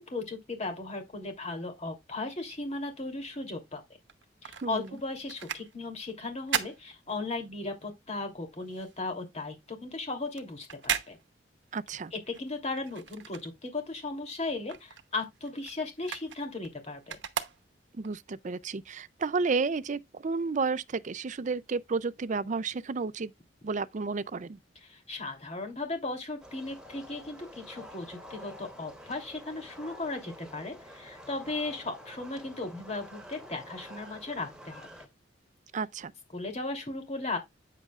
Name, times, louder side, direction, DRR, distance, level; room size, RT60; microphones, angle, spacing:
voice 1, 0.0-3.8 4.4-11.2 12.1-17.2 24.8-34.9 36.3-37.4, left 3 dB, 40° left, 2.9 m, -36 dB
sound 1, 4.0-7.7 8.0-14.0 14.3-18.1 18.6-18.7, right 8 dB, 75° right, 0.9 m, -38 dB
voice 2, 11.7-12.1 17.9-23.3 23.6-24.6 35.7-36.1, right 4 dB, 40° right, 0.5 m, -32 dB
sound 2, 26.4-35.1, equal, 5° right, 2.5 m, -48 dB
9.1 x 7.7 x 2.4 m
head